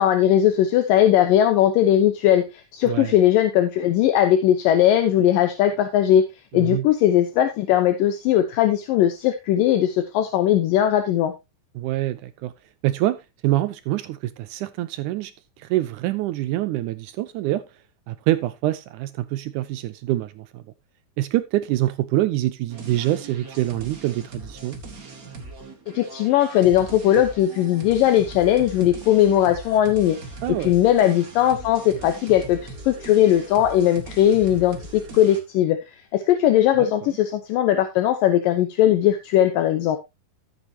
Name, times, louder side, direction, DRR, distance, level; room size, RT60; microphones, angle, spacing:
voice 1, 0.0-6.2 6.5-11.3 25.9-30.2 30.5-40.0, left 11 dB, 75° left, 2.6 m, -19 dB
voice 2, 2.9-3.2 6.5-6.9 11.8-12.5 12.8-15.3 15.6-17.6 18.1-20.6 21.2-24.8 30.4-30.7 36.8-36.9, right 15 dB, 80° right, 1.9 m, -25 dB
sound 1, 22.7-35.4, right 2 dB, 30° right, 1.8 m, -40 dB
13.5 x 8.2 x 2.8 m
omnidirectional pair, 4.0 m